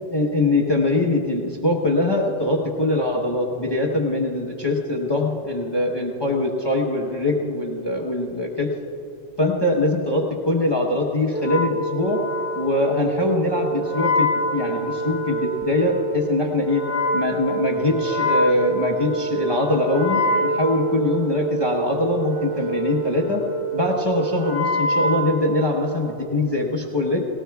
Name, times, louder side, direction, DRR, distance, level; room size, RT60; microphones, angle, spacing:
voice 1, 0.1-8.7 9.4-12.2 12.5-16.8 17.1-23.4 23.7-27.2, left 2 dB, 20° left, 0 dB, 1.0 m, -22 dB
Wind instrument woodwind instrument, 11.3-26.0, right 1 dB, 55° right, 3.3 m, -26 dB
18.5 x 18.5 x 2.3 m, 2.9 s
omnidirectional pair, 1.4 m